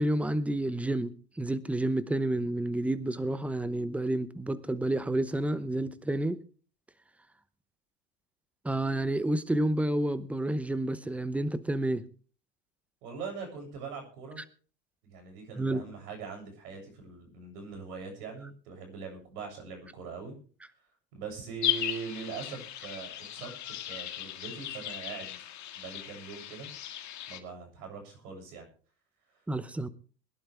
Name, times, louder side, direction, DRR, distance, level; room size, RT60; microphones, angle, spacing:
voice 1, 0.0-6.4 8.6-12.0 15.5-15.8 29.5-29.9, right 1 dB, 5° right, 14 dB, 0.9 m, -30 dB
voice 2, 13.0-14.4 15.0-20.3 21.1-23.5 23.9-25.4 25.7-26.7 27.3-28.7, right 5 dB, 65° right, 4 dB, 7.7 m, -42 dB
sound 1, 21.6-27.4, left 12 dB, 35° left, 1.8 m, -36 dB
22.0 x 11.5 x 3.5 m, 0.40 s
hypercardioid pair, 105°, 49 cm